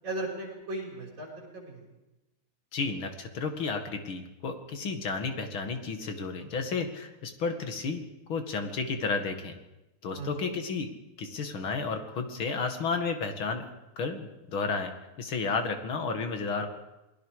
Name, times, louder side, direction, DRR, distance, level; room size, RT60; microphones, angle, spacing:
voice 1, 0.0-1.8 10.2-10.5, right 2 dB, 35° right, -3 dB, 6.9 m, -37 dB
voice 2, 2.7-8.0 8.3-9.5 10.0-10.9 11.2-13.7 14.0-14.9 15.2-16.7, left 4 dB, 45° left, 6 dB, 2.6 m, -32 dB
28.5 x 21.0 x 5.0 m, 0.97 s
omnidirectional pair, 3.4 m